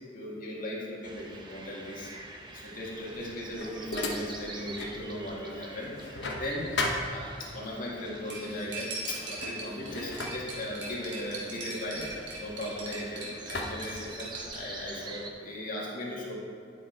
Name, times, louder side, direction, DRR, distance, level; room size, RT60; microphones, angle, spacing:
voice 1, 0.1-2.1 2.5-12.1 12.4-16.3, left 1 dB, 50° left, -5 dB, 2.1 m, -38 dB
sound 1, 1.0-15.3, right 2 dB, 25° right, 0.8 m, -47 dB
sound 2, 3.0-5.0 5.4-7.7 8.6-8.8 9.2-13.0 13.5-14.7, left 2 dB, 80° left, 1.0 m, -37 dB
Cutlery silverware, 8.3-14.6, right 2 dB, 80° right, 2.4 m, -40 dB
10.5 x 6.4 x 4.6 m, 2.4 s
head